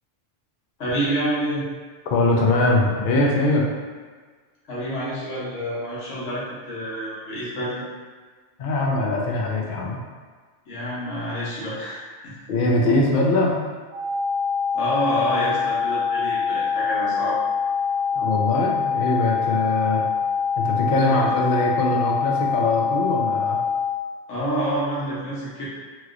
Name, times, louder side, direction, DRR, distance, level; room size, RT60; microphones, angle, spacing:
voice 1, 0.8-1.6 4.7-7.9 10.7-12.4 14.7-17.4 21.0-21.3 24.3-25.6, equal, 85° left, -8 dB, 1.3 m, -28 dB
voice 2, 2.1-3.6 8.6-10.0 12.5-13.6 18.2-20.0 20.6-23.6, left 2 dB, 55° left, -2 dB, 0.6 m, -22 dB
sound 1, 13.9-23.9, left 6 dB, 90° right, 1.0 m, -24 dB
3.0 x 2.8 x 2.4 m, 1.5 s
omnidirectional pair, 1.2 m